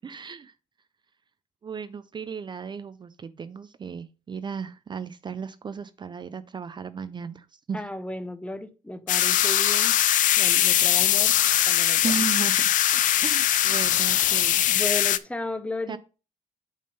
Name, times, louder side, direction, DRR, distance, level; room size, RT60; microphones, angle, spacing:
voice 1, 0.0-0.5 1.6-7.8 12.0-12.7 13.2-14.6 15.9-16.0, right 6 dB, 35° right, 0.4 m, -35 dB
voice 2, 7.7-10.0 10.4-11.4 11.7-12.1 13.7-13.8 14.7-16.0, left 2 dB, 10° left, 0.6 m, -34 dB
sound 1, 9.1-15.2, left 12 dB, 75° left, 0.4 m, -21 dB
8.6 x 3.7 x 5.3 m
cardioid pair, 120°, 14 cm